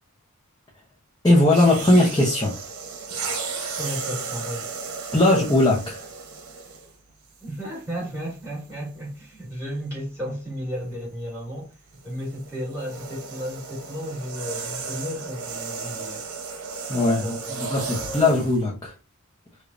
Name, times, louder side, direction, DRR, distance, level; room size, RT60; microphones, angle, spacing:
voice 1, 1.2-2.6 5.1-6.0 16.9-18.9, left 2 dB, 20° left, 0.8 m, -19 dB
sound 1, 1.4-7.0 7.8-8.0 11.9-18.6, right 5 dB, 80° right, 0.9 m, -34 dB
voice 2, 3.8-4.8 7.4-11.7 12.0-16.3 17.0-18.4, equal, 10° right, 1.7 m, -34 dB
4.9 x 2.4 x 2.6 m
head